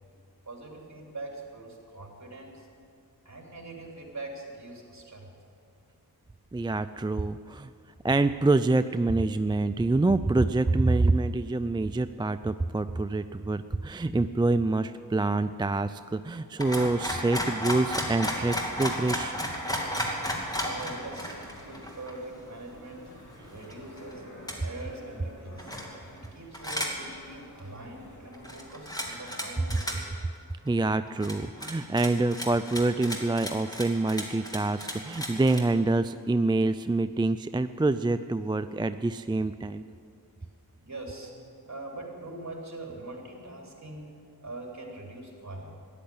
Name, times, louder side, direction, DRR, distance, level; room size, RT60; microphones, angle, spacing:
voice 1, 0.5-2.7 3.3-5.3 20.6-23.0 23.5-24.2 24.6-25.7 26.1-30.0 40.8-41.4 41.7-44.1 44.4-45.7, right 2 dB, 45° right, 0 dB, 3.4 m, -42 dB
voice 2, 6.5-7.7 8.0-19.4 30.7-39.8, right 2 dB, 15° right, 11 dB, 0.3 m, -26 dB
sound 1, 16.6-22.2 22.7-22.8 23.1-24.0 24.5-24.6 25.6-26.3 26.5-27.0 27.3-27.4 28.3-29.4 29.7-30.0 30.7-30.8 31.1-35.6, equal, 10° left, 2.6 m, -33 dB
sound 2, 18.0-29.6, equal, 50° left, 2.4 m, -50 dB
13.5 x 10.5 x 8.7 m, 2.4 s
wide cardioid pair, 55°, 38 cm